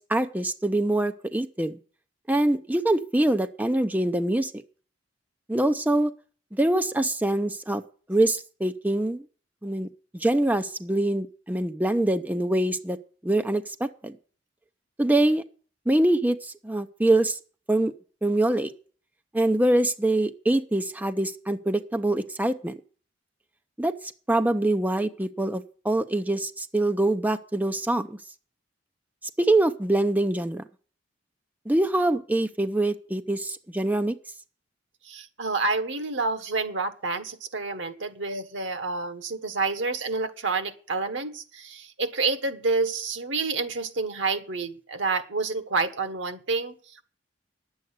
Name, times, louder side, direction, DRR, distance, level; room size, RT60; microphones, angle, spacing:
voice 1, 0.0-1.8 2.3-4.5 5.5-6.1 6.5-7.8 8.1-9.2 9.6-9.9 10.1-13.0 13.2-14.1 15.0-15.4 15.9-17.4 17.7-17.9 18.2-18.7 19.3-22.8 23.8-23.9 24.3-28.2 29.4-30.6 31.7-34.1, right 1 dB, 10° right, 9 dB, 0.6 m, -24 dB
voice 2, 35.1-46.7, right 3 dB, 85° right, 10 dB, 1.3 m, -28 dB
10.5 x 8.0 x 8.2 m, 0.42 s
head